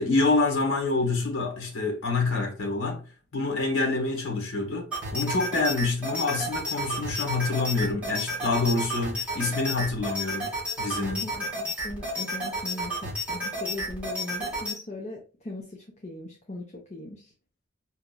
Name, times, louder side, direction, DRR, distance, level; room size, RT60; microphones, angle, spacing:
voice 1, 0.0-3.0 3.3-10.5 10.8-11.3, left 3 dB, 75° left, 1.1 m, -27 dB
sound 1, 4.9-14.8, equal, 5° right, 2.1 m, -32 dB
voice 2, 11.2-16.6 16.9-17.3, left 2 dB, 35° left, 0.7 m, -39 dB
4.9 x 2.9 x 2.2 m
head